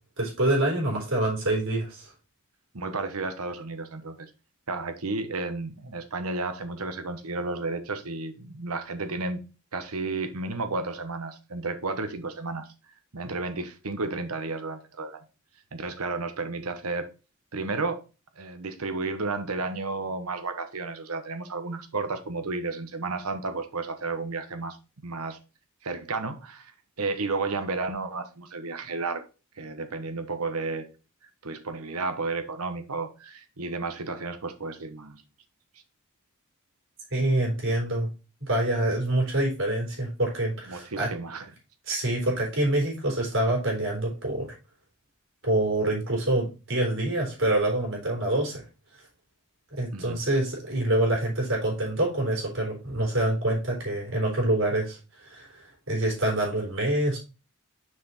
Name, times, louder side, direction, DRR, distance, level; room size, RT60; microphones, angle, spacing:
voice 1, 0.2-2.1 37.1-38.1 38.4-41.1 41.9-44.5 45.4-48.6 49.7-55.5 55.9-57.2, right 1 dB, 60° right, -1 dB, 3.6 m, -26 dB
voice 2, 2.7-4.3 4.7-9.4 9.7-12.7 13.1-15.2 15.7-17.1 17.5-18.0 18.4-24.8 25.0-25.4 25.8-26.7 27.0-29.3 29.6-30.9 31.4-35.2 40.7-41.5 49.9-50.2, right 3 dB, 75° right, 8 dB, 1.1 m, -32 dB
6.1 x 5.0 x 4.2 m, 0.31 s
head